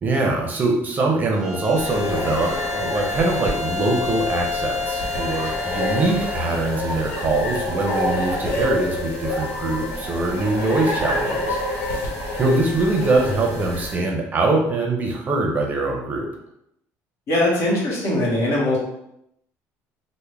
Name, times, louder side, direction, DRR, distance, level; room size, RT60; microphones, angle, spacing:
voice 1, 0.0-11.6 12.4-16.3, right 2 dB, 30° right, 0 dB, 0.6 m, -23 dB
Bowed string instrument, 1.3-6.6, left 3 dB, ahead, 1.0 m, -30 dB
sound 1, 1.8-13.9, left 1 dB, 80° left, 1.1 m, -27 dB
voice 2, 17.3-18.8, left 1 dB, 55° left, -3 dB, 1.2 m, -21 dB
3.4 x 2.1 x 3.3 m, 0.78 s
cardioid pair, 130°, 6 cm